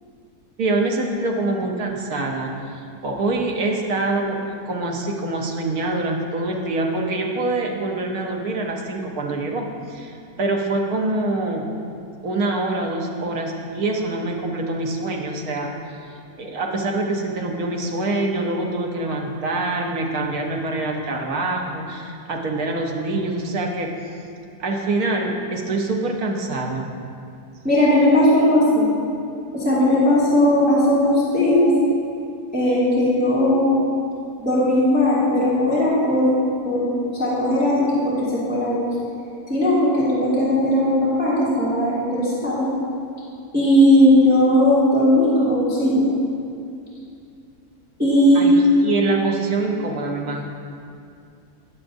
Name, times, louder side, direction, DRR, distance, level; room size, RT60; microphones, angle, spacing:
voice 1, 0.6-4.4 4.7-11.7 12.2-15.7 16.4-24.1 24.6-26.9 48.3-50.4, right 2 dB, 65° right, 1 dB, 1.4 m, -25 dB
voice 2, 27.6-28.9 29.5-31.7 32.5-33.7 34.4-36.3 36.6-36.9 37.2-38.9 39.5-42.6 43.5-46.2 48.0-48.5, left 1 dB, 5° right, -11 dB, 2.2 m, -17 dB
17.0 x 7.5 x 2.6 m, 2.5 s
omnidirectional pair, 1.7 m